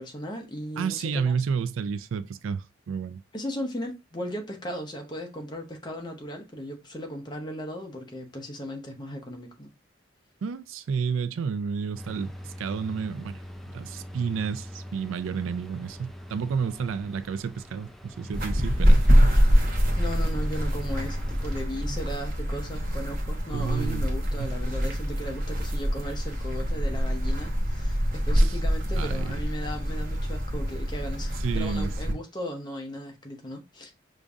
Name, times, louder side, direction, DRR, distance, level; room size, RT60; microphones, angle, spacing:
voice 1, 0.0-1.3 3.3-9.7 19.9-33.9, equal, 20° left, 0.7 m, -36 dB
voice 2, 0.8-3.2 10.4-13.4 13.7-19.4 23.5-24.1 24.4-24.5 28.4-28.6 29.0-29.4 31.4-32.2, right 6 dB, 90° right, 0.4 m, -31 dB
sound 1, 11.9-21.6, equal, ahead, 0.3 m, -41 dB
sound 2, 18.3-32.1, equal, 45° right, 0.8 m, -25 dB
5.1 x 2.6 x 2.3 m
head